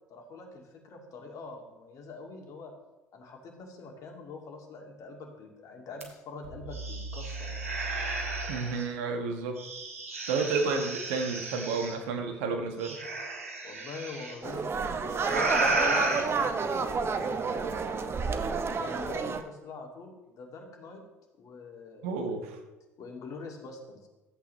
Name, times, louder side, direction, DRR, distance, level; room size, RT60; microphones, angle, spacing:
voice 1, 0.1-2.7 3.1-7.7 13.6-18.4 18.8-21.0 21.4-22.4 23.0-24.1, left 3 dB, 50° left, 1 dB, 2.3 m, -44 dB
sound 1, 6.0-6.1 6.4-8.8 9.6-11.9 12.8-14.3 15.2-16.2, right 2 dB, 85° right, 1.2 m, -32 dB
voice 2, 8.5-9.6 10.3-13.0 22.0-22.5, right 4 dB, 70° right, 5 dB, 1.3 m, -31 dB
sound 2, 14.4-19.4, right 5 dB, 35° right, 0.9 m, -30 dB
13.5 x 8.3 x 3.1 m, 1.1 s
hypercardioid pair, 60°, 7 cm